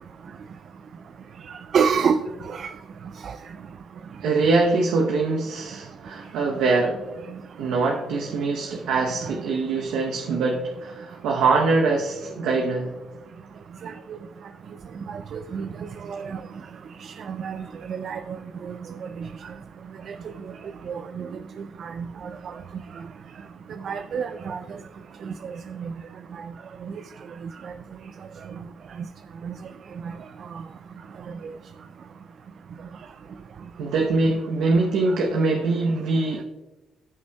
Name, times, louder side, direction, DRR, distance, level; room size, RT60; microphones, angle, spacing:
voice 1, 1.7-2.2 2.5-2.7 13.8-13.9 15.3-15.7 16.1-16.4 17.3-17.6 17.9-18.2 20.9-21.2 21.8-21.9 23.8-24.6 29.4-29.5, right 6 dB, 60° right, 10 dB, 0.4 m, -25 dB
voice 2, 4.2-7.0 7.6-13.0 33.8-36.4, right 3 dB, 85° right, 1 dB, 0.8 m, -23 dB
15.5 x 5.6 x 2.3 m, 1.1 s
cardioid pair, 80°, 0 cm